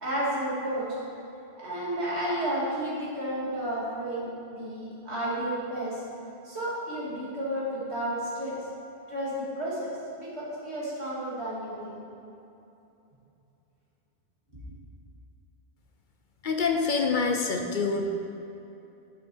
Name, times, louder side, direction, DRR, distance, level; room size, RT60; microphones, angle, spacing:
voice 1, 0.0-0.9 1.6-6.0 6.4-8.6 9.1-12.0, right 1 dB, 80° right, -7 dB, 2.8 m, -32 dB
voice 2, 16.4-18.1, left 4 dB, 55° left, 4 dB, 0.7 m, -26 dB
11.0 x 6.5 x 4.5 m, 2.8 s
omnidirectional pair, 1.1 m